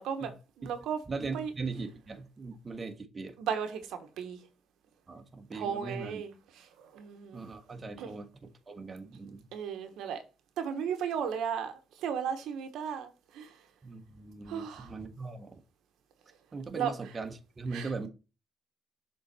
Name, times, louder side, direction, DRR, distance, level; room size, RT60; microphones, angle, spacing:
voice 1, 0.0-1.0 1.3-1.5 3.4-4.4 5.5-7.4 8.0-8.1 9.5-10.2 10.6-13.6 14.5-14.9 16.7-16.9 17.7-17.9, right 7 dB, 85° right, 1.1 m, -35 dB
voice 2, 1.1-3.4 5.1-6.2 7.3-9.5 13.8-15.6 16.5-18.1, right 4 dB, 30° right, 1.1 m, -40 dB
6.6 x 3.9 x 4.1 m
cardioid pair, 90°, 0 cm